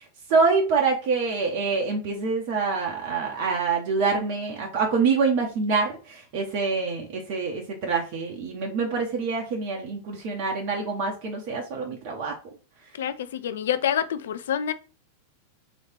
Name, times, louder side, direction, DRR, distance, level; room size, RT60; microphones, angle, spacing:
voice 1, 0.3-12.3, right 4 dB, 45° right, 0.9 m, -26 dB
voice 2, 13.0-14.7, left 9 dB, 60° left, 0.4 m, -27 dB
3.2 x 3.0 x 4.4 m
figure-of-eight pair, 90°, 0 cm